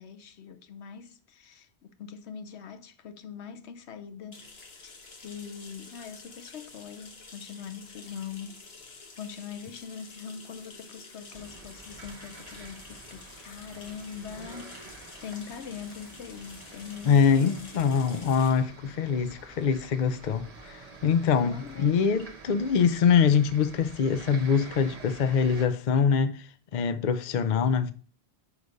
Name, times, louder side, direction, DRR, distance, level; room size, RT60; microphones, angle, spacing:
voice 1, 0.0-4.5 4.8-4.9 5.2-8.6 9.2-17.7 21.4-22.0, left 7 dB, 90° left, 1.0 m, -42 dB
sound 1, 4.3-23.7, left 3 dB, 70° left, 1.3 m, -50 dB
sound 2, 11.3-25.7, right 3 dB, 40° right, 0.9 m, -48 dB
voice 2, 17.1-26.4 26.7-27.9, left 6 dB, 50° left, 0.6 m, -24 dB
5.1 x 4.8 x 5.3 m
omnidirectional pair, 1.1 m